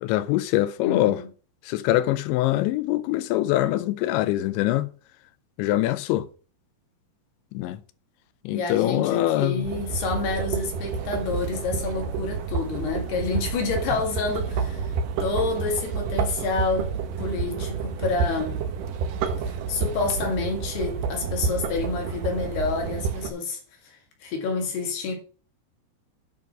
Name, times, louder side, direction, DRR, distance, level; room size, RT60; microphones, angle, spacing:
voice 1, 0.0-1.2 1.7-4.9 5.6-6.3 7.5-7.8 8.5-9.7, left 15 dB, 85° left, 2.9 m, -23 dB
voice 2, 0.8-1.3 8.5-14.9 15.2-16.9 17.2-18.6 19.7-25.2, left 4 dB, 65° left, 3.8 m, -28 dB
sound 1, 9.6-23.3, right 5 dB, 80° right, 1.9 m, -29 dB
9.5 x 6.0 x 5.9 m
omnidirectional pair, 5.4 m